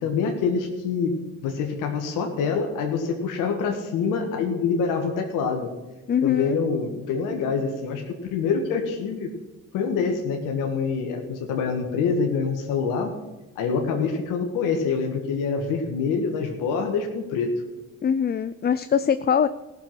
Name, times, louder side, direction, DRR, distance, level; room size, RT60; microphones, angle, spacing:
voice 1, 0.0-5.7 6.2-9.3 9.7-13.1 13.6-17.5, left 5 dB, 85° left, 3 dB, 1.5 m, -26 dB
voice 2, 6.1-6.6 18.0-19.5, left 7 dB, 30° left, 13 dB, 0.5 m, -22 dB
15.5 x 6.9 x 6.0 m, 1.1 s
supercardioid pair, 60°, 32 cm